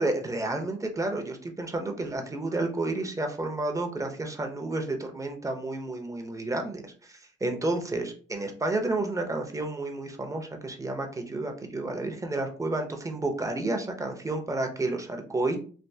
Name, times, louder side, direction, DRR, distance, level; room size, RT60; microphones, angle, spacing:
voice 1, 0.0-15.6, right 2 dB, 15° right, 3 dB, 0.7 m, -31 dB
3.4 x 2.6 x 2.7 m, 0.41 s
cardioid pair, 90°, 20 cm